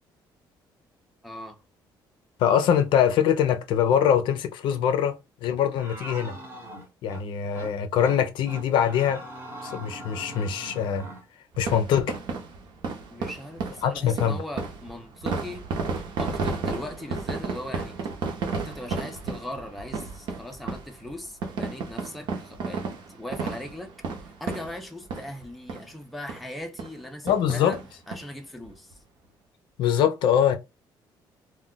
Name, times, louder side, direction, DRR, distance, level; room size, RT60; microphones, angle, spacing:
voice 1, 1.2-1.6 13.1-15.7 16.2-18.0 18.5-23.9 24.4-29.0, left 1 dB, ahead, 0.4 m, -39 dB
voice 2, 2.4-6.3 7.0-9.2 9.6-11.1 11.6-12.1 13.8-14.4 27.2-27.8 29.8-30.6, left 9 dB, 75° left, 0.5 m, -23 dB
sound 1, 5.8-7.2 7.6-7.7 8.0-8.2 8.5-11.2, right 1 dB, 25° right, 0.8 m, -41 dB
sound 2, 11.5-25.4 25.7-25.9 26.3-26.4 26.8-27.0 27.3-28.2 28.6-28.7 28.9-29.0, right 4 dB, 65° right, 0.7 m, -33 dB
2.4 x 2.2 x 3.8 m
cardioid pair, 170°, 8 cm